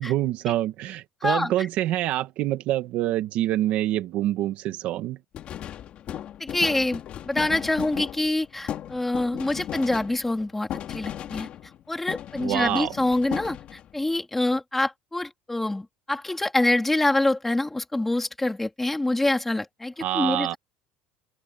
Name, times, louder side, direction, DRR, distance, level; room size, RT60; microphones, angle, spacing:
voice 1, 0.0-5.2 12.4-13.0 20.0-20.5, right 14 dB, 50° right, 1.4 m, -26 dB
sound 1, 5.3-11.8 12.1-14.0, left 10 dB, 35° left, 2.4 m, -36 dB
voice 2, 6.4-11.5 11.9-13.6 13.9-20.6, left 2 dB, 5° left, 3.0 m, -25 dB
cardioid pair, 165°, 3 cm